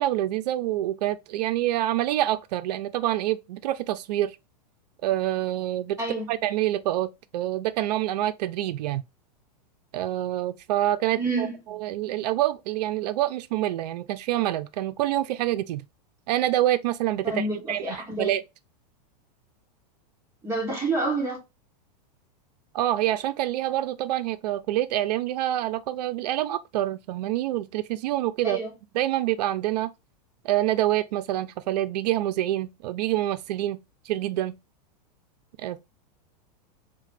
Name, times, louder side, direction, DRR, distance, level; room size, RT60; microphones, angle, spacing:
voice 1, 0.0-4.3 5.0-6.0 6.3-9.0 9.9-15.9 16.3-18.4 22.7-28.6 28.9-29.9 30.4-33.8 34.1-34.6 35.6-35.8, right 14 dB, 75° right, 0.4 m, -26 dB
voice 2, 11.2-11.6 17.2-18.3 20.4-21.4 28.4-28.7, right 2 dB, 10° right, 1.4 m, -28 dB
2.9 x 2.1 x 3.2 m
supercardioid pair, 135°, 21 cm